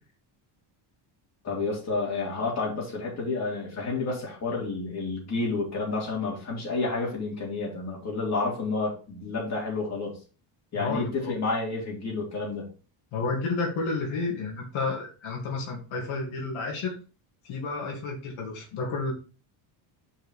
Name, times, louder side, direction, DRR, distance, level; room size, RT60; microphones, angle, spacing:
voice 1, 1.4-10.2 10.7-12.7, left 3 dB, 30° left, -3 dB, 3.8 m, -30 dB
voice 2, 10.8-11.3 13.1-16.9 17.4-19.1, left 3 dB, 75° left, -1 dB, 2.8 m, -31 dB
5.8 x 5.6 x 4.9 m, 0.35 s
cardioid pair, 145°, 49 cm